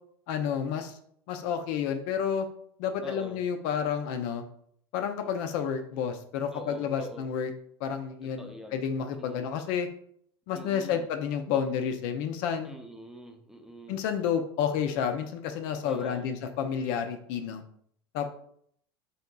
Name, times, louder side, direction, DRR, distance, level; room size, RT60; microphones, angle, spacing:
voice 1, 0.3-1.0 1.3-2.5 2.8-4.4 4.9-7.5 7.8-9.9 10.5-12.7 13.9-17.6 18.1-18.3, left 7 dB, 60° left, 7 dB, 0.4 m, -30 dB
voice 2, 3.0-3.4 6.5-7.3 8.2-8.8 9.1-9.5 10.5-11.1 12.6-14.0 15.8-16.3, equal, 5° right, 3 dB, 0.4 m, -44 dB
3.4 x 2.6 x 2.3 m, 0.65 s
hypercardioid pair, 75°, 13 cm